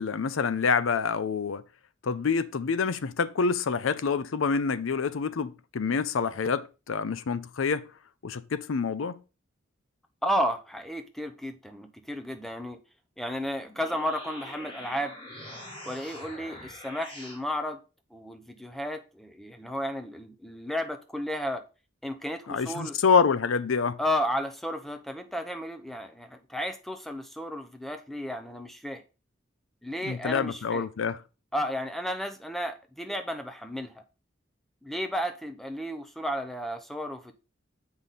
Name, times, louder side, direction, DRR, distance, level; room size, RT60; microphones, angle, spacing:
voice 1, 0.0-1.6 2.0-7.9 8.2-9.2 22.5-24.0 30.0-31.2, left 5 dB, 90° left, 0.5 m, -27 dB
voice 2, 10.2-12.8 13.2-15.2 15.9-17.8 18.1-21.6 22.0-23.0 24.0-29.0 29.8-30.9 31.5-34.0 34.8-37.3, equal, ahead, 0.7 m, -33 dB
sound 1, 13.6-17.4, left 1 dB, 25° left, 2.5 m, -44 dB
7.8 x 5.2 x 4.1 m
head